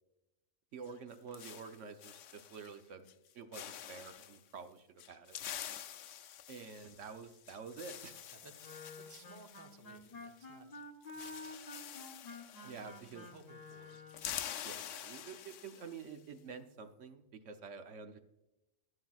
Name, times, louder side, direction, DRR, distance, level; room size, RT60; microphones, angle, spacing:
voice 1, 0.7-3.1 3.3-5.4 6.5-8.3 12.6-13.3 14.6-18.2, right 5 dB, 70° right, 7 dB, 1.1 m, -49 dB
sound 1, 0.8-2.8 3.1-3.3 3.5-4.4 5.0-10.5 10.7-10.8 11.0-13.4 13.7-16.1, left 10 dB, 75° left, 0.9 m, -47 dB
voice 2, 8.3-10.7 11.1-11.5 12.6-14.0, right 4 dB, 20° right, 6 dB, 0.5 m, -59 dB
Wind instrument woodwind instrument, 8.6-14.4, left 2 dB, 35° left, 0.8 m, -50 dB
11.5 x 11.0 x 2.3 m, 0.92 s
omnidirectional pair, 1.3 m